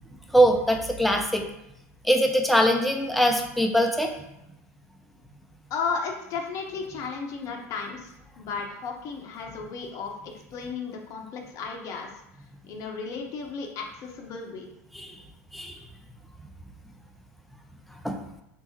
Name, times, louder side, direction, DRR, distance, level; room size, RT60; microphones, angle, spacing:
voice 1, 0.3-1.4 2.0-4.1 14.9-15.2 15.5-15.8 18.0-18.2, equal, ahead, 3 dB, 0.5 m, -22 dB
voice 2, 5.7-12.1 12.6-14.7, left 5 dB, 40° left, 2 dB, 0.6 m, -34 dB
3.3 x 3.0 x 2.9 m, 0.82 s
hypercardioid pair, 85°, 8 cm